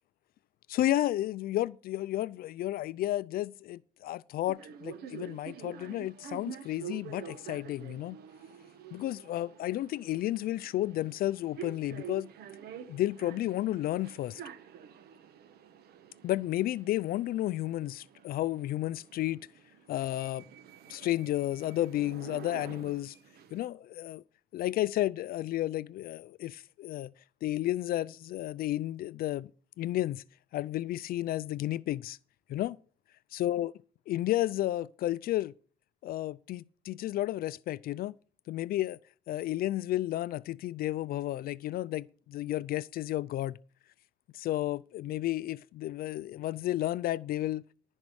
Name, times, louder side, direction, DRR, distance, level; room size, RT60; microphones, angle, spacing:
voice 1, 0.7-8.2 8.9-12.3 12.9-14.4 16.2-19.5 19.9-20.4 20.9-23.1 23.5-24.2 24.5-27.1 27.4-29.5 29.8-30.2 30.5-32.2 32.5-32.8 33.4-33.7 34.1-35.5 36.0-38.1 38.5-39.0 39.3-43.5 44.3-47.6, left 14 dB, 60° left, 0.4 m, -32 dB
sound 1, 4.5-23.7, right 8 dB, 70° right, 1.2 m, -48 dB
14.0 x 5.3 x 6.3 m
cardioid pair, 110°, 17 cm